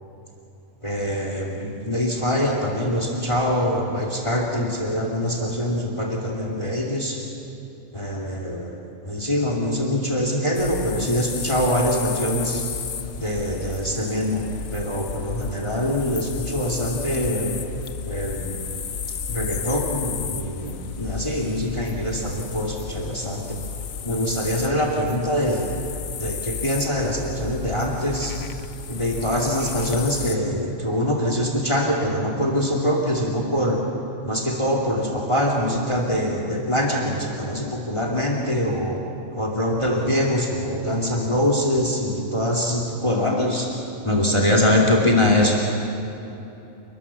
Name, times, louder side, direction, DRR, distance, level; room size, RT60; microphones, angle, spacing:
voice 1, 0.8-7.2 7.9-8.8 9.0-12.6 13.2-14.4 14.7-17.6 18.0-18.6 19.3-23.6 24.0-25.8 26.2-28.3 28.9-33.8 34.2-39.0 39.3-43.7 44.0-45.6, left 1 dB, 20° left, 0 dB, 2.7 m, -23 dB
sound 1, 10.5-30.4, left 6 dB, 85° left, 1.4 m, -33 dB
30.0 x 20.0 x 7.2 m, 3.0 s
omnidirectional pair, 1.4 m